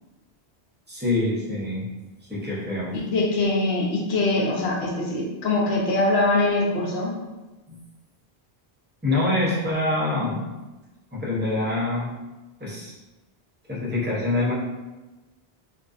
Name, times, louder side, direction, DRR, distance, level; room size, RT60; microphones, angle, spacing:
voice 1, 0.9-1.9 2.3-3.0 7.7-7.8 9.0-10.5 11.1-12.1 12.6-12.9 13.7-14.5, left 2 dB, 15° right, -7 dB, 0.5 m, -25 dB
voice 2, 2.9-7.1, left 2 dB, 75° left, -3 dB, 0.8 m, -23 dB
2.4 x 2.2 x 2.4 m, 1.1 s
omnidirectional pair, 1.1 m